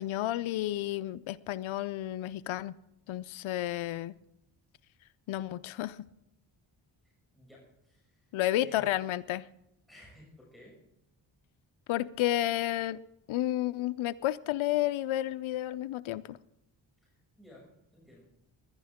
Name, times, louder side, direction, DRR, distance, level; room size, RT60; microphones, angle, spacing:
voice 1, 0.0-2.7 3.1-4.1 5.3-6.0 8.3-9.5 11.9-13.0 13.3-16.4, left 14 dB, 80° left, 0.6 m, -31 dB
voice 2, 7.0-8.9 9.9-10.8 17.0-18.3, equal, ahead, 6.4 m, -56 dB
20.5 x 11.5 x 3.6 m
cardioid pair, 60°, 47 cm